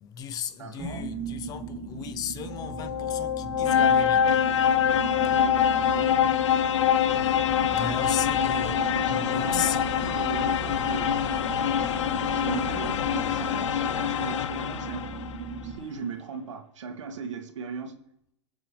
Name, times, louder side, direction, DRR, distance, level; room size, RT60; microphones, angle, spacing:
voice 1, 0.0-4.4 7.6-9.8, left 8 dB, 25° left, 0.7 m, -35 dB
voice 2, 0.6-1.1 5.2-6.1 7.9-8.3 8.8-11.1 12.3-15.1 15.6-18.0, right 5 dB, 85° right, 2.2 m, -38 dB
sound 1, 0.8-15.8, right 4 dB, 20° right, 3.0 m, -38 dB
sound 2, 2.5-15.3, left 9 dB, 85° left, 0.6 m, -25 dB
sound 3, 7.1-13.5, left 3 dB, 60° left, 3.6 m, -40 dB
21.5 x 7.4 x 3.4 m
hypercardioid pair, 145°, 15 cm